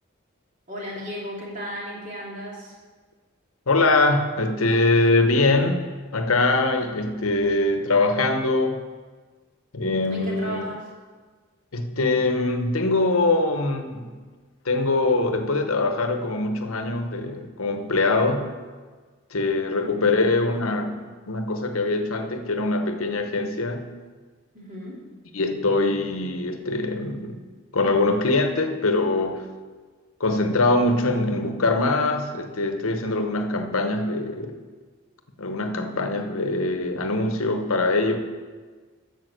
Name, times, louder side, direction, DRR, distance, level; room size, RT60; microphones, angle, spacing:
voice 1, 0.7-2.7 10.1-10.9 19.7-20.0 24.5-25.0, equal, 35° right, -4 dB, 2.7 m, -35 dB
voice 2, 3.7-5.9 6.1-8.8 9.7-10.6 11.7-14.1 14.6-18.5 19.3-21.0 21.3-23.9 25.3-27.4 27.7-29.5 30.2-34.6 35.4-38.2, left 2 dB, 80° left, 6 dB, 0.9 m, -23 dB
9.2 x 6.9 x 6.5 m, 1.4 s
head